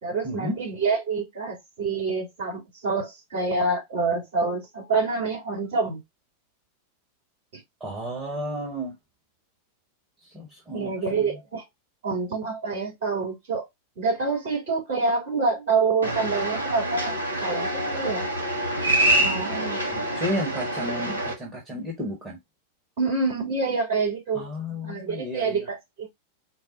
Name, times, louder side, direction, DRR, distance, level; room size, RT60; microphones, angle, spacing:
voice 1, 0.0-6.0 7.5-7.6 10.7-11.6 12.0-13.6 14.0-18.3 19.2-19.8 23.0-24.5 24.8-26.1, right 4 dB, 55° right, 3.2 m, -27 dB
voice 2, 7.8-8.9 10.3-11.4 19.9-22.4 24.3-25.6, equal, 20° right, 1.5 m, -32 dB
sound 1, 16.0-21.3, right 1 dB, 75° right, 1.3 m, -26 dB
4.6 x 2.2 x 4.0 m
figure-of-eight pair, 90°, 0 cm